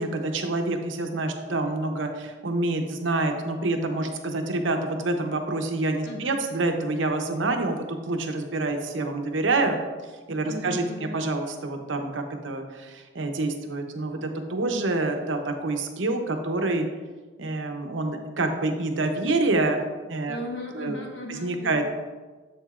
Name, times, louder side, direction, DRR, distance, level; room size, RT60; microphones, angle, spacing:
voice 1, 0.0-9.8 10.3-16.9 17.4-19.8 20.1-20.4 20.7-21.0 21.3-21.9, right 2 dB, 80° right, 5 dB, 0.8 m, -27 dB
voice 2, 6.0-6.4 10.4-11.1 20.3-21.9, left 1 dB, 80° left, 1 dB, 1.2 m, -37 dB
7.7 x 7.1 x 2.5 m, 1.3 s
head